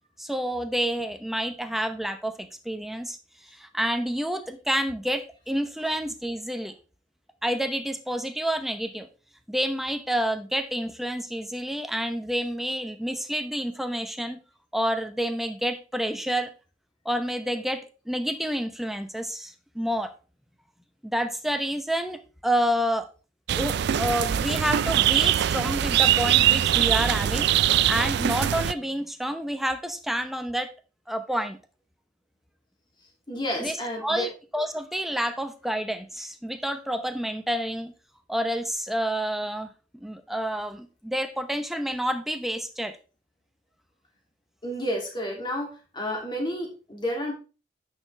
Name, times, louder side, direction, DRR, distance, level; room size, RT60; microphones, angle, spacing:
voice 1, 0.2-3.2 3.4-6.7 7.4-9.1 9.5-14.4 14.7-16.5 17.0-20.1 21.0-23.1 23.5-27.5 27.9-30.7 31.1-31.6 33.6-33.8 34.0-34.3 34.5-37.9 38.3-39.7 40.0-43.0, equal, ahead, 8 dB, 0.7 m, -29 dB
sound 1, 23.5-28.7, right 11 dB, 60° right, 0.3 m, -22 dB
voice 2, 33.3-34.3 44.6-47.3, equal, 25° left, 0 dB, 2.5 m, -30 dB
9.5 x 6.5 x 3.3 m, 0.34 s
head